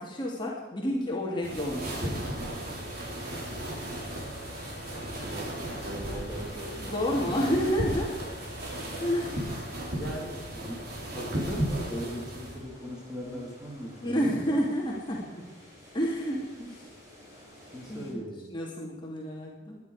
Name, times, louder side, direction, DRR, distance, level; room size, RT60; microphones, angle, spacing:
voice 1, 0.0-2.1 6.8-8.2 9.0-9.5 14.0-15.4 15.9-16.9 17.9-19.8, equal, 30° left, -3 dB, 2.4 m, -30 dB
sound 1, 1.4-12.6, right 1 dB, 60° right, 3.6 m, -35 dB
sound 2, 2.6-11.3 11.6-11.7, left 3 dB, 50° left, 2.7 m, -49 dB
voice 2, 5.2-5.6 5.8-6.8 9.9-10.9 11.1-14.6 17.7-18.5, equal, 5° right, -3 dB, 3.2 m, -39 dB
sound 3, 11.8-18.1, left 1 dB, 20° right, 5.3 m, -52 dB
18.0 x 11.0 x 4.9 m, 1.2 s
head